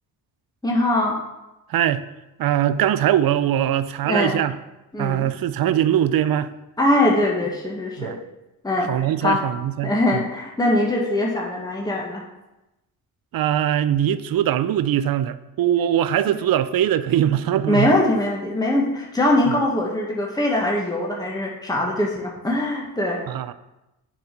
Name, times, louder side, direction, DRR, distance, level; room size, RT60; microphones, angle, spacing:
voice 1, 0.6-1.2 4.0-4.4 4.9-5.3 6.8-8.2 8.6-9.4 9.8-12.2 16.3-16.4 17.7-23.2, left 1 dB, 10° left, -2 dB, 1.7 m, -22 dB
voice 2, 1.7-2.0 2.4-4.6 5.0-6.5 8.0-8.2 8.9-10.2 13.3-17.9 23.3-23.5, right 11 dB, 60° right, 14 dB, 0.6 m, -21 dB
6.7 x 4.8 x 5.6 m, 0.96 s
supercardioid pair, 60°, 40 cm